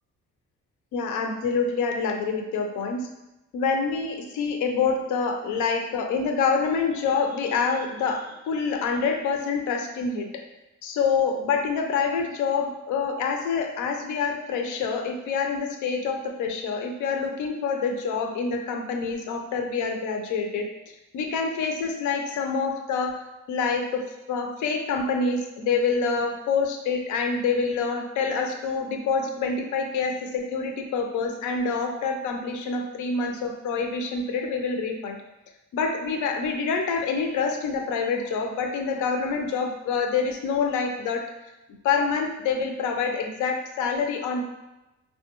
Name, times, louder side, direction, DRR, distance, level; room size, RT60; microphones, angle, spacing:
voice 1, 0.9-3.1 3.5-10.3 10.8-20.7 21.1-23.2 23.5-35.2 35.7-41.3 41.8-44.4, left 5 dB, 80° left, 4 dB, 0.5 m, -26 dB
3.3 x 2.2 x 2.9 m, 0.96 s
cardioid pair, 90°, 30 cm